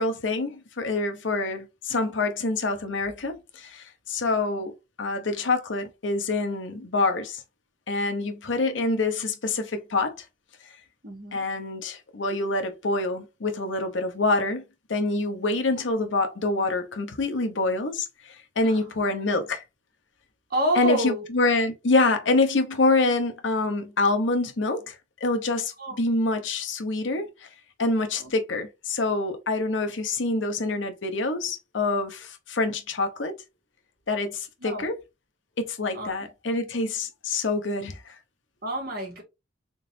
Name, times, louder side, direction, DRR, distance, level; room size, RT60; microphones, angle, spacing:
voice 1, 0.0-4.7 5.0-7.4 7.9-10.2 11.3-14.6 14.9-19.6 20.7-25.0 25.2-27.5 27.8-33.4 34.1-35.0 35.6-38.2, left 2 dB, 70° left, 0.8 m, -26 dB
voice 2, 11.0-11.4 18.6-18.8 20.5-21.3 25.8-26.0 28.2-28.3 34.6-34.9 35.9-36.1 38.6-39.2, right 1 dB, 50° right, 1.8 m, -28 dB
3.8 x 3.8 x 2.7 m
head